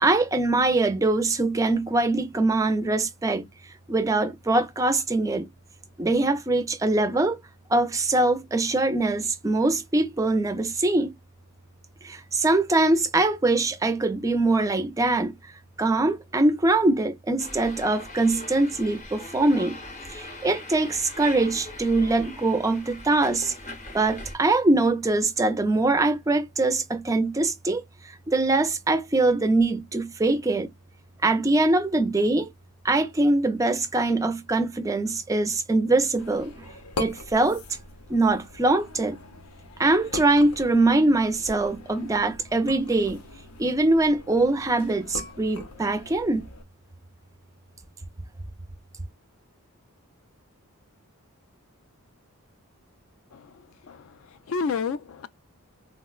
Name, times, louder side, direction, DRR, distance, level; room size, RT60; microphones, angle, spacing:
voice 1, 0.0-3.5 3.9-5.5 6.0-7.4 7.7-11.2 12.0-15.4 15.8-19.8 20.1-23.5 23.9-30.7 31.2-32.5 32.8-36.6 37.0-37.6 38.1-39.2 39.8-43.2 43.6-46.5, right 2 dB, 15° right, 0.3 m, -23 dB
sound 1, 17.4-24.4, left 2 dB, 30° left, 0.7 m, -41 dB
sound 2, 36.2-46.6, left 3 dB, 85° left, 0.7 m, -41 dB
voice 2, 53.3-55.3, left 5 dB, 60° left, 0.3 m, -31 dB
3.6 x 2.1 x 2.2 m
head